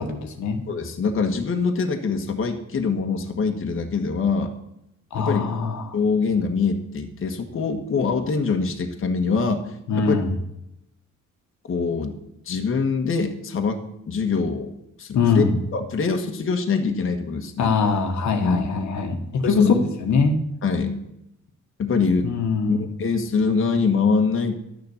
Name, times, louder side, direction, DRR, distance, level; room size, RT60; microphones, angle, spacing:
voice 1, 0.0-0.7 5.1-6.0 9.9-10.4 15.1-15.6 17.6-20.4 22.2-22.9, left 4 dB, 70° left, 5 dB, 1.6 m, -22 dB
voice 2, 0.7-4.5 5.2-5.4 5.9-9.6 9.9-10.2 11.7-12.2 12.4-13.8 14.1-14.7 15.0-15.4 15.7-17.7 18.4-18.7 19.4-19.8 20.6-21.0 21.8-22.3 22.7-24.5, left 5 dB, 45° left, 4 dB, 1.5 m, -23 dB
11.5 x 6.8 x 7.2 m, 0.84 s
cardioid pair, 90°, 30 cm